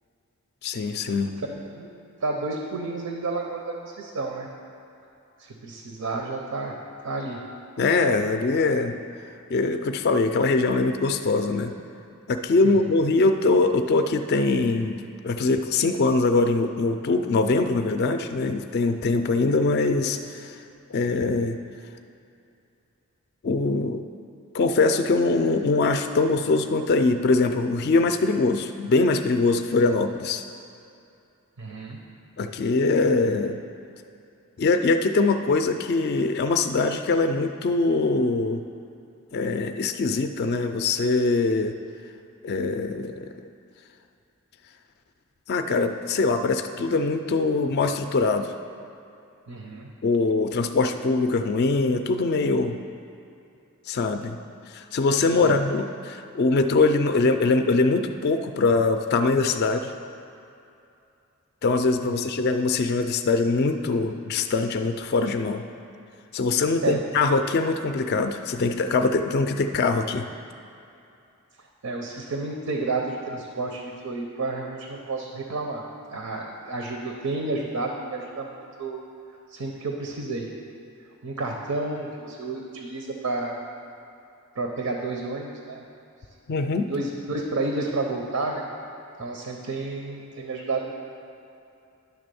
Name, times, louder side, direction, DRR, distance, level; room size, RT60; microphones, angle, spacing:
voice 1, 0.6-1.3 7.8-8.9 9.5-11.7 12.3-20.6 20.9-21.6 23.4-24.0 24.5-30.4 32.4-33.6 34.6-38.6 39.3-41.7 42.4-43.3 45.5-48.5 50.0-52.8 53.9-54.4 54.7-59.9 61.6-65.6 66.3-70.3 86.5-86.9, left 3 dB, 45° left, 7 dB, 0.3 m, -23 dB
voice 2, 1.5-1.9 2.2-4.5 5.4-6.8 7.0-7.4 12.6-12.7 31.6-32.0 49.5-49.9 55.4-55.6 62.0-62.1 66.8-67.0 71.8-75.8 76.1-79.0 79.5-80.5 81.2-83.6 84.6-85.8 86.9-88.7 89.2-90.9, right 3 dB, 85° right, 1 dB, 0.7 m, -30 dB
10.0 x 3.4 x 6.8 m, 2.7 s
head